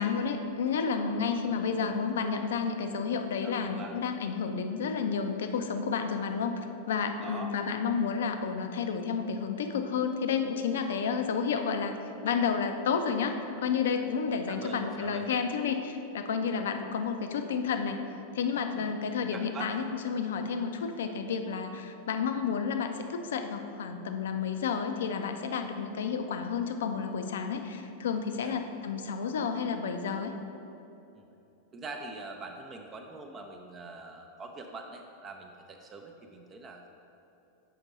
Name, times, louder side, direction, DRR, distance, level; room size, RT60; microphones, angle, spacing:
voice 1, 0.0-6.6 6.9-12.0 12.2-18.0 18.3-30.3, left 6 dB, 60° left, 7 dB, 0.5 m, -31 dB
voice 2, 1.3-1.8 3.4-4.0 7.2-7.5 14.5-15.3 18.7-18.9 19.3-20.3 28.4-28.6 31.1-31.3 31.7-36.9, right 3 dB, 25° right, 3 dB, 0.5 m, -44 dB
6.6 x 5.1 x 3.9 m, 2.9 s
figure-of-eight pair, 90°, 0 cm